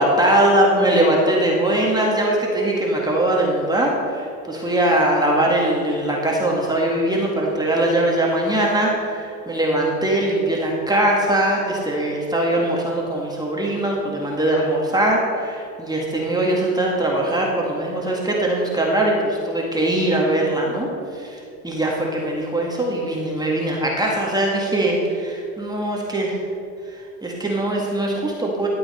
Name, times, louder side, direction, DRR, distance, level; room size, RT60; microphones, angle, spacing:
voice 1, 0.0-20.9 21.1-26.4 26.9-28.7, right 1 dB, 10° right, -3 dB, 1.8 m, -21 dB
13.0 x 7.9 x 4.3 m, 2.5 s
hypercardioid pair, 105°, 45 cm